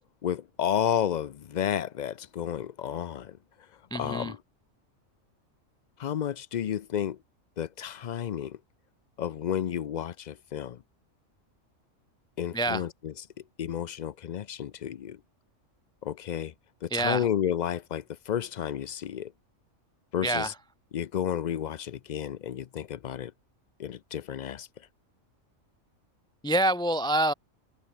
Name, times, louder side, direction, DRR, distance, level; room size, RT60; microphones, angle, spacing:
voice 1, 0.2-3.4 3.9-4.4 6.0-7.2 7.6-8.6 9.2-10.8 12.4-13.1 13.6-15.2 16.0-16.5 16.8-19.3 20.1-20.5 20.9-23.3 23.8-24.7, left 9 dB, 70° left, 0.4 m, -31 dB
voice 2, 3.9-4.3 12.5-12.9 16.9-17.3 20.2-20.6 26.4-27.3, right 1 dB, 5° left, 0.6 m, -26 dB
omnidirectional pair, 1.4 m